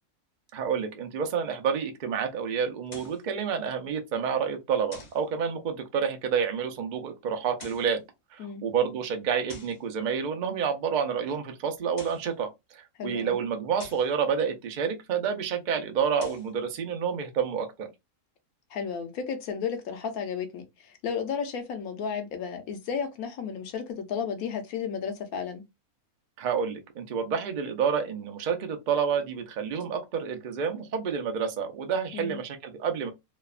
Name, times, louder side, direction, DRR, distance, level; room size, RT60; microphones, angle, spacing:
voice 1, 0.5-8.0 8.3-17.9 26.4-33.1, right 7 dB, 90° right, 0.4 m, -29 dB
sound 1, 2.9-3.3 4.9-5.3 7.4-8.0 9.5-9.8 11.8-12.3 13.8-14.1 16.0-16.5, left 2 dB, 40° left, 0.6 m, -47 dB
voice 2, 13.0-13.4 18.7-25.6 32.1-32.4, left 6 dB, 75° left, 1.1 m, -33 dB
3.0 x 2.1 x 2.3 m
omnidirectional pair, 1.6 m